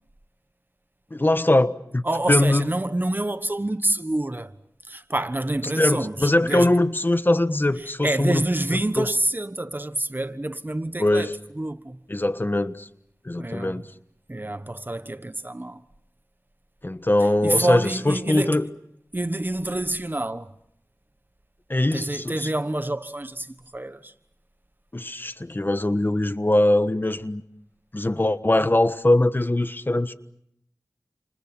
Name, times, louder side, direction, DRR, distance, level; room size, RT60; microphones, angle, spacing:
voice 1, 1.1-2.7 5.8-8.4 9.0-9.1 11.0-11.3 12.1-12.9 13.2-13.9 16.8-18.7 21.7-22.5 24.9-27.4 27.9-30.1, left 1 dB, 35° left, 1.3 m, -22 dB
voice 2, 2.0-4.5 4.8-6.7 7.8-12.0 13.4-13.9 14.3-15.8 17.4-18.6 19.1-20.5 21.9-24.1, right 1 dB, 30° right, 1.3 m, -27 dB
29.5 x 27.5 x 6.1 m
wide cardioid pair, 40°, 6 cm